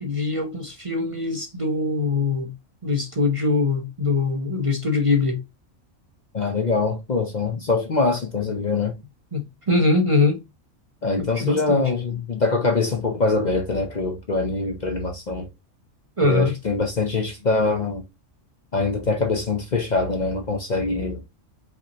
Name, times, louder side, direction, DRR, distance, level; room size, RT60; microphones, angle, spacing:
voice 1, 0.0-2.5 2.8-5.4 9.3-10.4 11.2-11.9 16.2-16.6, left 3 dB, 30° right, 0.7 m, -22 dB
voice 2, 6.3-9.0 11.0-15.5 16.2-18.0 18.7-21.2, left 3 dB, 45° left, 0.7 m, -23 dB
5.2 x 2.9 x 2.8 m
omnidirectional pair, 1.3 m